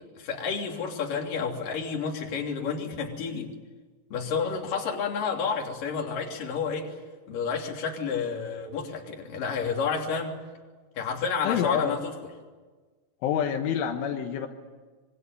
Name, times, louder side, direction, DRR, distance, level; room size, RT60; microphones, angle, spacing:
voice 1, 0.0-3.5 4.1-6.9 7.3-10.3 11.0-12.1, left 5 dB, 50° left, 1 dB, 4.5 m, -30 dB
voice 2, 11.4-12.0 13.2-14.5, left 8 dB, 85° left, 4 dB, 3.9 m, -27 dB
25.5 x 23.5 x 9.6 m, 1.4 s
omnidirectional pair, 5.5 m